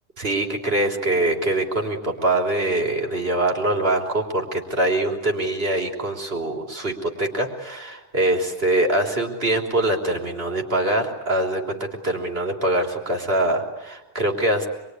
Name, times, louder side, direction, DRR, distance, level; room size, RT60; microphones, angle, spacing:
voice 1, 0.2-14.7, right 1 dB, 60° right, 3 dB, 3.8 m, -23 dB
26.5 x 23.0 x 9.7 m, 1.0 s
omnidirectional pair, 1.1 m